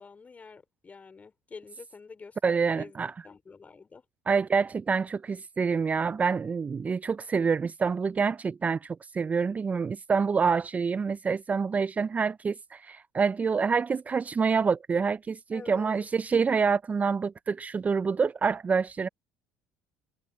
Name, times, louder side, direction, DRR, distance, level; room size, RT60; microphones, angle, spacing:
voice 1, 0.0-2.4 2.7-4.0 15.5-16.1, left 4 dB, 30° left, 4.6 m, -47 dB
voice 2, 2.4-3.1 4.3-19.1, right 5 dB, 30° right, 0.5 m, -27 dB
hypercardioid pair, 70°, 5 cm